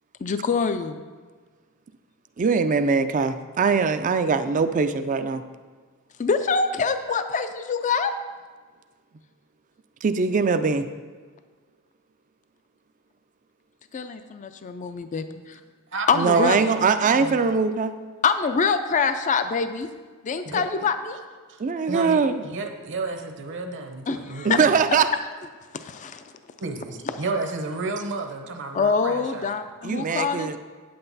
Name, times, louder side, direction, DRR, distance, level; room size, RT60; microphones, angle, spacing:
voice 1, 0.2-1.0 6.2-8.1 13.9-15.6 16.1-16.6 18.2-19.9 20.2-21.2 24.1-24.6 25.7-26.2 28.7-30.6, left 5 dB, 35° left, 9 dB, 0.4 m, -25 dB
voice 2, 2.4-5.4 10.0-10.9 16.1-17.9 21.6-22.4 24.4-25.1 29.8-30.6, right 5 dB, 35° right, 10 dB, 0.4 m, -22 dB
voice 3, 15.9-17.4 20.4-20.6 21.5-21.6 21.9-25.0 26.6-29.6, right 3 dB, 55° right, 5 dB, 0.9 m, -32 dB
8.8 x 7.7 x 4.0 m, 1.5 s
head